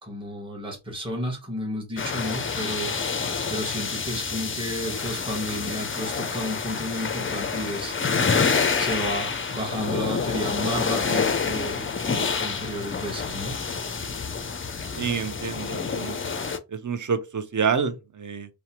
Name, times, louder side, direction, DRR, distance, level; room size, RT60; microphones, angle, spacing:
voice 1, 0.0-2.9 3.5-8.1 8.8-13.5, equal, 10° right, 1.0 m, -32 dB
sound 1, 2.0-16.6, left 5 dB, 30° left, 0.4 m, -28 dB
voice 2, 15.0-16.2 16.7-18.6, right 6 dB, 40° right, 0.5 m, -28 dB
2.6 x 2.2 x 2.9 m
wide cardioid pair, 45°, 49 cm